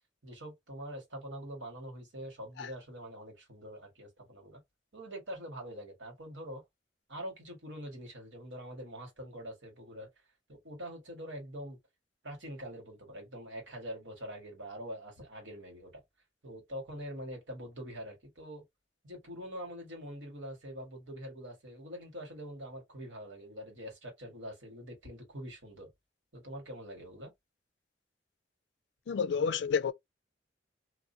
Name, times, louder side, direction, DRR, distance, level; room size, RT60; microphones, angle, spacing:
voice 1, 0.2-4.6 4.9-6.6 7.1-10.1 10.5-11.8 12.2-15.9 16.4-18.6 19.0-25.9 26.3-27.3, equal, 85° right, 1.7 m, -44 dB
voice 2, 29.1-29.9, left 6 dB, 70° left, 0.4 m, -30 dB
2.6 x 2.5 x 2.6 m
head